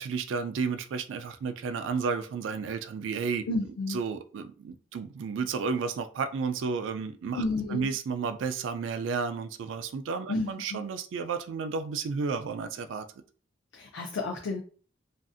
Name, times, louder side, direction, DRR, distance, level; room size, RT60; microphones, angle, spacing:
voice 1, 0.0-3.4 3.9-7.4 7.7-13.0, right 5 dB, 80° right, 9 dB, 0.3 m, -32 dB
voice 2, 3.5-4.0 7.3-7.9 10.3-10.8 13.7-14.6, left 2 dB, 90° left, 1 dB, 0.4 m, -31 dB
2.5 x 2.4 x 2.5 m, 0.42 s
head